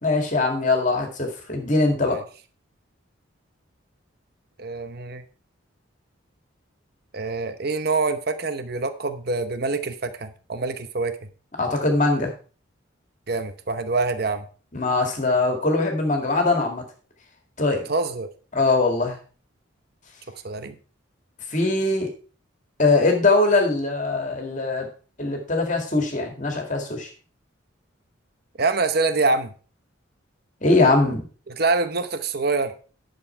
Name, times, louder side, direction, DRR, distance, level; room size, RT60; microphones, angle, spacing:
voice 1, 0.0-2.2 11.6-12.3 14.7-16.8 17.6-17.8 18.5-19.2 21.5-22.1 22.8-24.9 25.2-27.1 30.6-31.2, left 3 dB, 40° left, 3 dB, 2.1 m, -21 dB
voice 2, 4.6-5.2 7.1-11.3 13.3-14.5 17.9-18.3 20.4-20.8 28.6-29.5 31.6-32.7, right 3 dB, 50° right, 10 dB, 0.9 m, -25 dB
11.0 x 6.7 x 4.5 m, 0.38 s
head